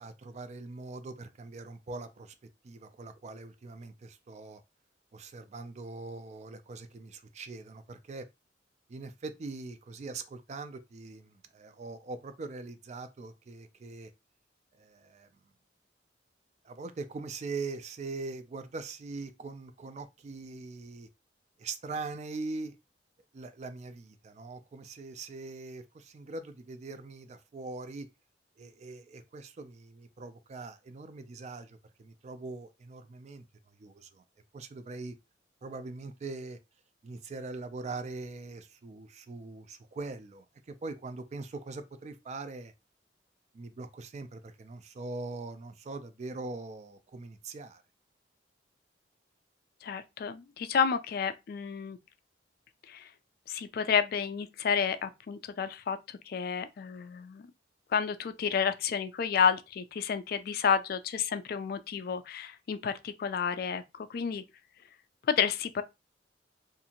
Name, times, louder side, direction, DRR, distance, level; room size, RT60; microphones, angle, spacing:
voice 1, 0.0-2.3 2.6-4.6 5.1-8.3 8.9-14.1 14.7-15.3 16.6-21.1 21.6-22.8 23.3-28.1 28.6-33.4 33.8-34.2 34.5-35.2 35.6-36.6 37.0-42.7 43.5-47.8, right 3 dB, 35° right, 0.3 m, -42 dB
voice 2, 49.8-52.0 52.9-53.1 53.5-57.5 57.9-64.4 65.3-65.8, left 6 dB, 55° left, 0.3 m, -30 dB
2.7 x 2.5 x 2.7 m
head